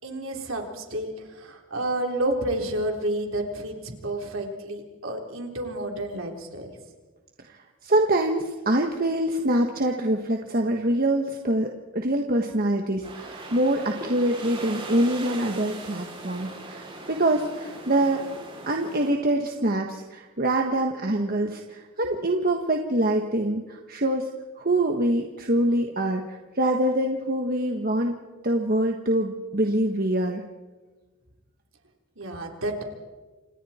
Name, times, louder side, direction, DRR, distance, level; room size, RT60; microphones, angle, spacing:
voice 1, 0.0-6.7 12.9-13.0 22.0-22.1 32.2-32.8, right 1 dB, 65° right, 2 dB, 3.7 m, -30 dB
voice 2, 7.8-18.2 18.7-24.3 24.6-28.1 28.4-30.4, right 1 dB, 40° right, 3 dB, 1.4 m, -25 dB
sound 1, 13.0-19.1, right 2 dB, 25° right, 6.3 m, -39 dB
29.5 x 27.0 x 4.4 m, 1.3 s
head